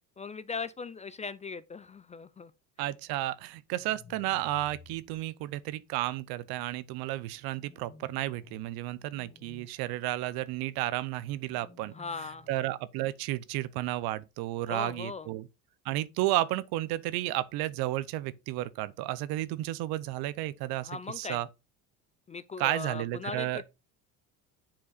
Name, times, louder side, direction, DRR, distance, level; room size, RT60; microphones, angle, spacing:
voice 1, 0.2-2.5 11.9-12.5 14.7-15.3 20.8-21.4 22.3-23.6, left 5 dB, 20° left, 0.3 m, -39 dB
voice 2, 2.8-11.9 12.5-15.5 15.8-21.5 22.6-23.6, right 15 dB, 70° right, 0.7 m, -32 dB
sound 1, 3.8-5.2 7.5-8.6 9.0-9.7 11.4-12.6, left 4 dB, 40° left, 2.5 m, -54 dB
7.4 x 4.7 x 4.1 m
supercardioid pair, 95°, 38 cm